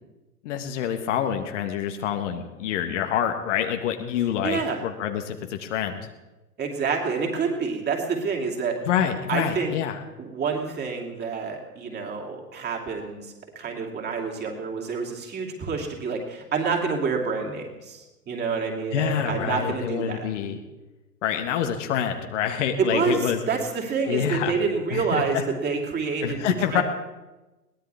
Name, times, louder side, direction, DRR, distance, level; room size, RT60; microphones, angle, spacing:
voice 1, 0.4-6.0 8.9-10.0 18.9-20.6 21.2-23.4 24.1-24.6 24.9-25.4 26.2-26.8, left 9 dB, 50° left, 5 dB, 1.8 m, -26 dB
voice 2, 4.4-4.8 6.6-8.8 9.3-9.7 10.2-20.3 22.8-26.4 26.7-26.8, right 5 dB, 20° right, 1 dB, 3.0 m, -28 dB
22.0 x 18.5 x 3.6 m, 1.1 s
figure-of-eight pair, 100°, 47 cm